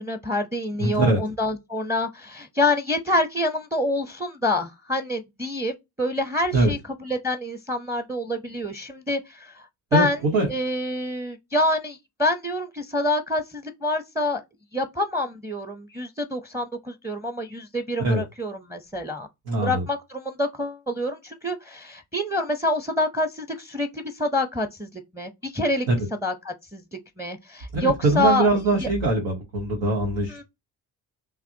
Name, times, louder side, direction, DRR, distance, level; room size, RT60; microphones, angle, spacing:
voice 1, 0.0-10.2 10.5-14.4 14.7-19.3 19.6-25.9 26.2-28.9 30.3-30.4, left 1 dB, 5° right, 0.6 m, -27 dB
voice 2, 0.8-1.2 6.5-6.7 9.9-10.5 18.0-18.2 19.5-19.8 25.9-26.0 27.7-30.4, right 2 dB, 90° right, 1.0 m, -22 dB
5.6 x 2.0 x 2.7 m
hypercardioid pair, 50°, 42 cm